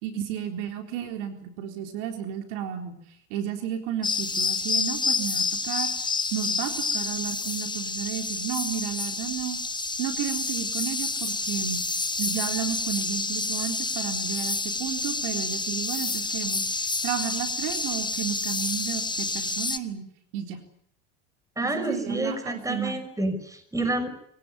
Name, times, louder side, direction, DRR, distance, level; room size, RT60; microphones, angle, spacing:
voice 1, 0.0-3.0 3.3-5.9 6.3-9.6 10.0-11.8 12.2-20.0 20.3-20.6 21.6-23.0, right 9 dB, 70° right, 5 dB, 4.0 m, -32 dB
sound 1, 4.0-19.8, left 3 dB, 10° left, 1.4 m, -29 dB
voice 2, 21.6-24.1, right 2 dB, 10° right, 9 dB, 5.8 m, -29 dB
23.5 x 17.5 x 9.9 m, 0.70 s
hypercardioid pair, 95°, 39 cm